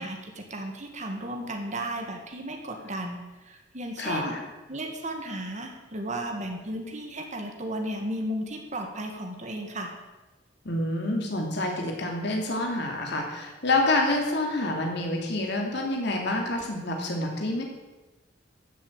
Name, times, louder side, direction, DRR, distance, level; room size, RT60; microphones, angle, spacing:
voice 1, 0.0-4.3 4.7-9.9, right 1 dB, 40° right, 3 dB, 1.8 m, -34 dB
voice 2, 4.0-4.4 10.6-17.6, left 2 dB, 65° left, 1 dB, 2.8 m, -27 dB
14.0 x 7.4 x 8.6 m, 1.1 s
head